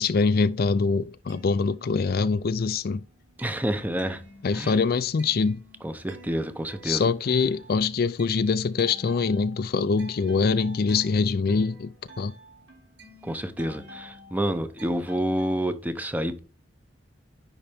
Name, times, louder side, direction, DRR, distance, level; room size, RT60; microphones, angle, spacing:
voice 1, 0.0-3.0 4.4-5.6 6.8-12.3, left 4 dB, 55° left, 0.4 m, -24 dB
sound 1, 1.1-2.5 2.8-15.7, left 1 dB, 70° right, 3.1 m, -50 dB
voice 2, 3.4-4.2 4.5-4.8 5.8-7.1 13.2-16.4, right 1 dB, 10° right, 0.7 m, -28 dB
9.9 x 4.0 x 3.5 m
head